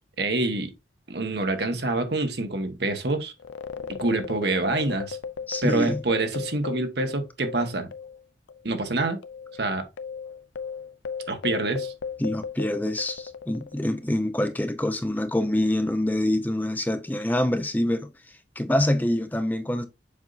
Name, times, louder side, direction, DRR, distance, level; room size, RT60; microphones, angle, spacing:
voice 1, 0.2-0.7 1.1-3.3 3.9-5.2 5.6-7.9 8.6-9.2 9.6-9.8 11.3-11.9, right 2 dB, 65° right, 1.3 m, -26 dB
sound 1, 3.4-8.2 8.5-8.6 9.2-14.0, left 6 dB, 80° left, 0.5 m, -36 dB
voice 2, 5.5-6.0 12.2-19.9, left 1 dB, 10° left, 0.5 m, -26 dB
7.2 x 5.2 x 2.6 m
head